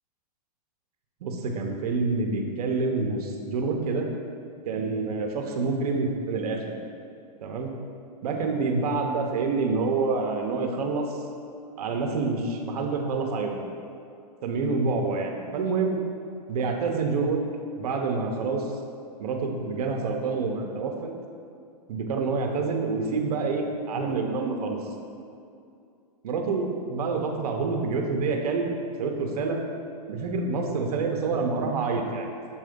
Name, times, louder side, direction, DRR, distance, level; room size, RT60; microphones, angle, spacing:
voice 1, 1.2-4.1 4.7-6.8 7.4-7.7 8.2-11.2 11.8-13.6 14.4-16.0 16.5-17.4 17.8-18.7 19.2-21.1 21.9-24.8 26.2-28.7 29.0-29.6 30.1-32.3, right 4 dB, 70° right, 2 dB, 0.9 m, -27 dB
7.0 x 2.7 x 5.1 m, 2.5 s
hypercardioid pair, 145°, 20 cm